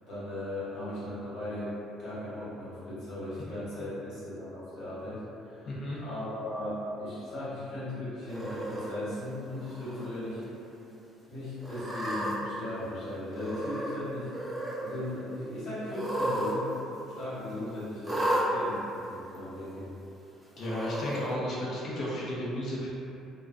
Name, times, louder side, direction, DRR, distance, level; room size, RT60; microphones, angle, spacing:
voice 1, 0.1-1.7 2.0-5.7 6.0-10.4 11.3-14.3 14.8-19.9, left 1 dB, 70° left, -12 dB, 1.2 m, -37 dB
voice 2, 5.7-6.0 20.6-22.9, left 1 dB, 55° left, -6 dB, 0.7 m, -33 dB
Cat, 8.3-8.9 9.6-10.0 10.4-10.5 11.6-12.3 13.3-14.0 14.2-14.8 15.9-16.5 16.8-16.9 18.0-18.4 19.3-19.4 20.6-21.1, right 1 dB, 15° right, 0.5 m, -33 dB
2.2 x 2.2 x 2.5 m, 2.8 s
supercardioid pair, 90°, 0 cm